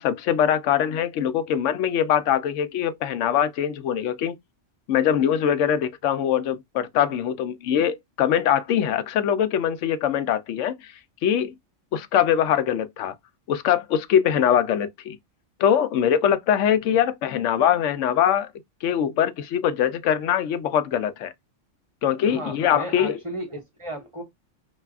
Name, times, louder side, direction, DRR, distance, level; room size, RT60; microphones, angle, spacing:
voice 1, 0.0-4.4 4.9-10.9 11.2-11.5 11.9-13.1 13.5-15.2 15.6-18.5 18.8-21.3 22.0-23.2, left 9 dB, 85° left, 0.9 m, -22 dB
voice 2, 22.2-24.2, right 1 dB, 25° right, 1.1 m, -34 dB
5.6 x 2.6 x 2.3 m
omnidirectional pair, 1.2 m